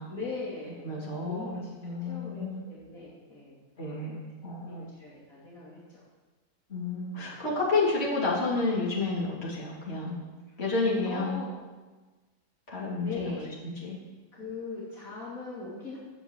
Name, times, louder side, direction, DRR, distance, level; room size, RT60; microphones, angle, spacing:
voice 1, 0.0-3.6 3.8-4.2 4.7-6.0 7.1-7.4 11.0-11.6 12.7-13.5 14.3-16.0, left 3 dB, 55° left, -7 dB, 3.2 m, -41 dB
voice 2, 0.8-1.6 1.8-2.6 3.8-4.9 6.7-10.2 10.6-11.4 12.7-13.3 13.6-14.0, left 3 dB, 40° left, -6 dB, 3.7 m, -30 dB
12.5 x 8.0 x 7.9 m, 1.3 s
omnidirectional pair, 1.7 m